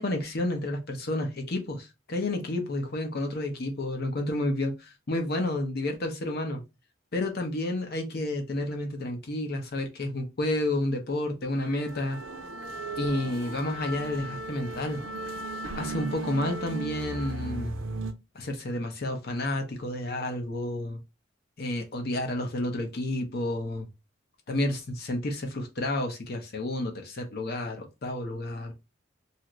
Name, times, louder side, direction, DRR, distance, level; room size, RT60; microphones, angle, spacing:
voice 1, 0.0-6.6 7.1-12.2 13.0-15.0 15.7-17.8 18.3-21.0 21.6-23.9 24.5-28.7, left 1 dB, 55° left, 4 dB, 0.7 m, -30 dB
sound 1, 11.6-18.1, right 2 dB, 85° right, 0.5 m, -36 dB
2.7 x 2.5 x 3.0 m, 0.25 s
head